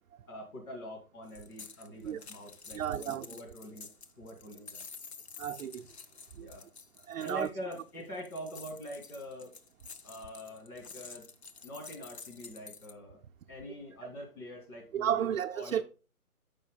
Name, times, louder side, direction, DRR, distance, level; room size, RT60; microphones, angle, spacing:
voice 1, 0.3-3.9 4.2-4.8 6.4-6.7 7.2-9.5 10.0-11.3 11.6-13.2 13.5-15.8, equal, 70° left, 2.7 m, -44 dB
sound 1, 1.3-12.9, left 5 dB, 45° left, 0.6 m, -50 dB
voice 2, 2.7-3.3 5.4-5.9 6.3-6.5 7.1-7.5 14.9-15.8, right 10 dB, 65° right, 0.5 m, -32 dB
7.2 x 5.4 x 3.7 m
hypercardioid pair, 165°, 45 cm